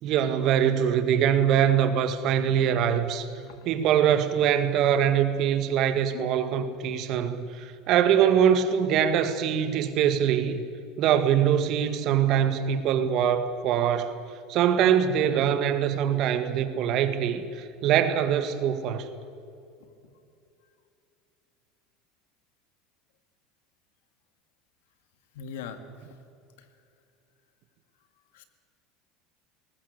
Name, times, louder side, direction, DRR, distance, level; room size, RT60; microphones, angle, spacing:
voice 1, 0.0-3.3 3.7-10.6 11.0-14.1 14.5-19.1, right 9 dB, 55° right, 1.9 m, -23 dB
voice 2, 25.3-25.8 28.3-28.4, left 7 dB, 75° left, 2.0 m, -39 dB
20.0 x 19.0 x 8.2 m
hypercardioid pair, 90°, 0 cm